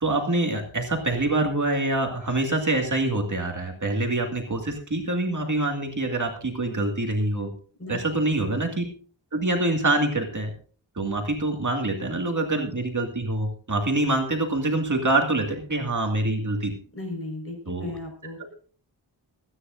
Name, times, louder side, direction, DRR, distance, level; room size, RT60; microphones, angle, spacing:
voice 1, 0.0-7.5 7.9-8.8 9.3-10.5 11.0-16.7 17.7-17.9, right 2 dB, 40° right, 3 dB, 2.2 m, -25 dB
voice 2, 17.0-18.4, left 2 dB, 30° left, 2 dB, 5.2 m, -35 dB
24.0 x 10.0 x 2.6 m, 0.41 s
wide cardioid pair, 95°, 45 cm